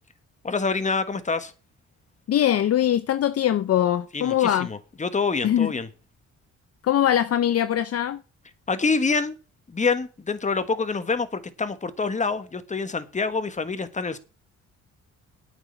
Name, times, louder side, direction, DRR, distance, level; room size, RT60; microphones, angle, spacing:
voice 1, 0.4-1.5 4.1-5.9 8.7-9.3 9.7-14.2, left 4 dB, 25° left, 1.5 m, -26 dB
voice 2, 2.3-4.7 5.4-5.7 6.8-8.2, left 11 dB, 55° left, 0.7 m, -22 dB
8.9 x 6.4 x 8.0 m
cardioid pair, 90°, 30 cm